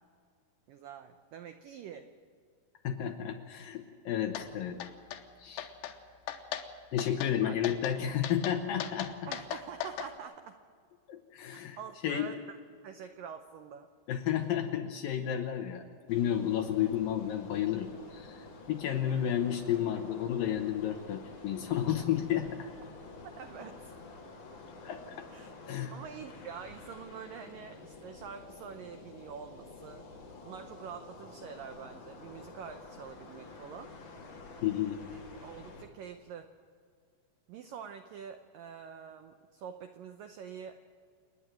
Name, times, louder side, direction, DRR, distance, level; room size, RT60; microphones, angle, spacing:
voice 1, 0.7-2.1 7.4-7.6 9.3-10.6 11.5-12.6 12.8-13.9 23.4-23.9 25.3-25.5 25.9-30.0 30.4-33.9 35.1-36.5 37.5-40.8, right 7 dB, 90° right, 7 dB, 1.9 m, -46 dB
voice 2, 2.8-4.8 5.4-5.7 6.9-9.1 11.1-11.8 12.0-12.3 14.1-22.7 24.8-25.2 25.7-25.9 34.6-35.0, left 10 dB, 70° left, 5 dB, 2.3 m, -32 dB
sound 1, 4.4-4.5 4.8-5.2 5.6-6.0 6.3-6.7 7.0-7.3 7.6-8.0 8.2-10.1, left 11 dB, 85° left, 3.5 m, -38 dB
sound 2, 16.1-35.9, left 3 dB, 50° left, 3.6 m, -50 dB
29.0 x 9.9 x 9.1 m, 2.1 s
omnidirectional pair, 5.1 m